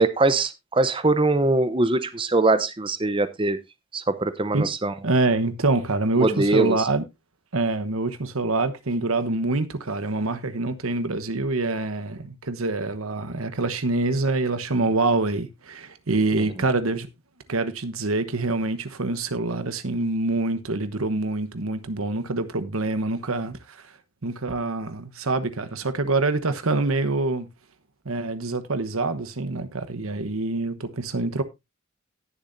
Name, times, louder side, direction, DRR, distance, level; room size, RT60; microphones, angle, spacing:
voice 1, 0.0-3.6 3.9-4.9 6.2-6.9, right 2 dB, 25° right, 0.8 m, -22 dB
voice 2, 5.0-7.0 7.5-17.1 17.5-23.8 24.2-27.5 28.0-31.4, right 2 dB, 80° right, 1.1 m, -25 dB
18.0 x 7.0 x 2.6 m
head